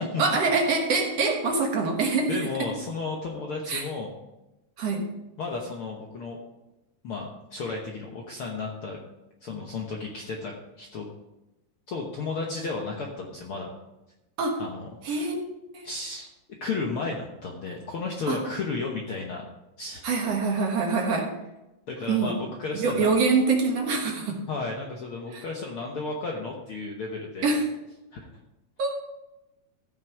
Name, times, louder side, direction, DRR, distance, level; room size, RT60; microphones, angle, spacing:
voice 1, 0.0-2.3 3.7-3.8 4.8-5.0 14.4-14.6 15.0-15.9 18.3-18.4 20.0-21.3 22.1-22.3 22.8-24.4 25.3-25.4 27.4-27.7 28.8-29.0, right 4 dB, 60° right, 1 dB, 2.2 m, -25 dB
voice 2, 2.3-4.1 5.4-6.4 7.0-9.0 9.4-11.1 11.9-13.7 14.6-15.3 15.8-16.3 16.6-19.4 19.8-20.0 21.9-23.1 24.5-27.5 28.1-28.3, left 3 dB, 65° left, 0 dB, 1.4 m, -33 dB
14.0 x 6.1 x 4.8 m, 0.95 s
omnidirectional pair, 3.8 m